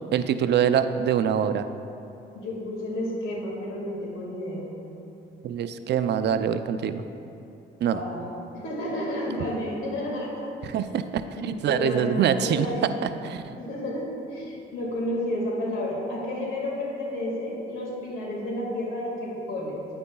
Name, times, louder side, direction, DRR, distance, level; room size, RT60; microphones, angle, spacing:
voice 1, 0.1-1.6 5.4-7.0 7.8-8.0 10.6-13.5, right 8 dB, 60° right, 10 dB, 0.4 m, -25 dB
voice 2, 2.3-4.7 7.8-8.3 8.5-10.5 11.4-12.9 13.5-19.8, left 1 dB, 85° left, -3 dB, 1.9 m, -31 dB
9.5 x 9.3 x 2.3 m, 2.8 s
cardioid pair, 90°, 20 cm